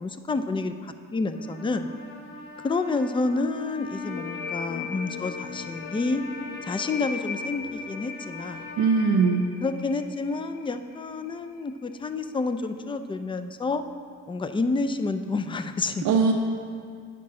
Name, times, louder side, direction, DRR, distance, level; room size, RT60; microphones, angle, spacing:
voice 1, 0.0-1.9 2.6-6.2 6.6-8.7 9.6-13.8 14.3-16.1, left 3 dB, 15° left, 9 dB, 0.4 m, -29 dB
Trumpet, 1.2-9.2, left 2 dB, 65° left, 1.6 m, -43 dB
sound 1, 4.0-11.4, left 6 dB, 85° left, 0.5 m, -38 dB
voice 2, 8.8-9.5 16.0-16.3, right 4 dB, 80° right, 2 dB, 0.6 m, -20 dB
9.7 x 6.0 x 3.7 m, 2.2 s
cardioid pair, 90°, 30 cm